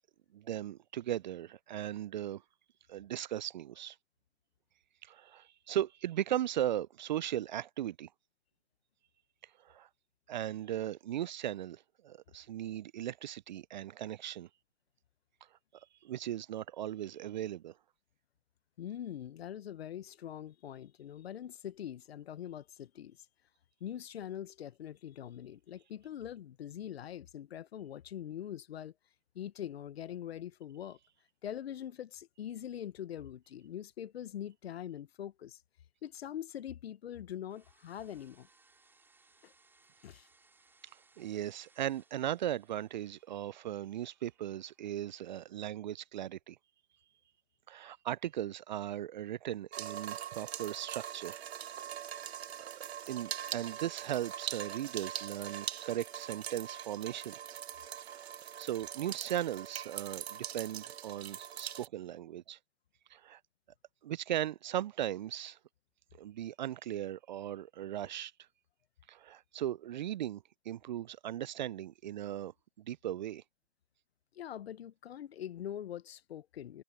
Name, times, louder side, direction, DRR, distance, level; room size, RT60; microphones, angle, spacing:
voice 1, 0.3-2.4 2.9-4.0 5.0-8.1 9.6-9.9 10.3-14.5 16.0-17.7 41.2-46.6 47.7-51.4 52.6-52.7 53.1-57.3 58.0-58.3 58.6-62.6 63.1-63.4 64.0-65.6 66.2-68.3 69.1-72.5 72.8-73.4, right 12 dB, 40° right, 0.6 m, -37 dB
voice 2, 18.8-23.2 23.8-28.9 29.3-31.0 31.4-35.6 36.0-38.5 39.4-39.5 40.0-40.3 74.3-76.8, left 10 dB, 55° left, 1.2 m, -43 dB
sound 1, 37.5-45.6, right 3 dB, 5° right, 5.4 m, -68 dB
sound 2, 49.7-61.9, right 10 dB, 55° right, 1.1 m, -42 dB
figure-of-eight pair, 130°, 37 cm